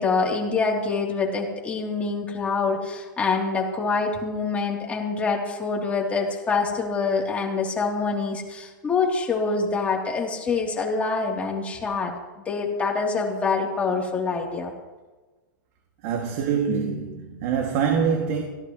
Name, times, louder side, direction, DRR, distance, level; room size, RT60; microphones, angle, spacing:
voice 1, 0.0-12.1 12.4-14.7, left 4 dB, 15° left, 3.4 m, -25 dB
voice 2, 16.0-18.4, right 6 dB, 40° right, 2.4 m, -24 dB
24.5 x 18.0 x 3.2 m
supercardioid pair, 155°, 11 cm